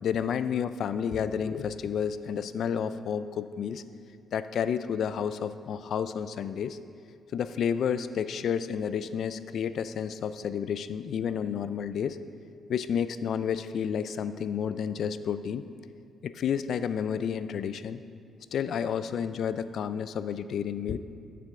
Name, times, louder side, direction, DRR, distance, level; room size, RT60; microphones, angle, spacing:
voice 1, 0.0-3.8 4.3-6.8 7.3-12.2 12.7-15.6 16.2-18.0 18.5-21.0, left 7 dB, 65° left, 13 dB, 0.4 m, -30 dB
12.5 x 6.9 x 3.7 m, 2.4 s
cardioid pair, 90°, 0 cm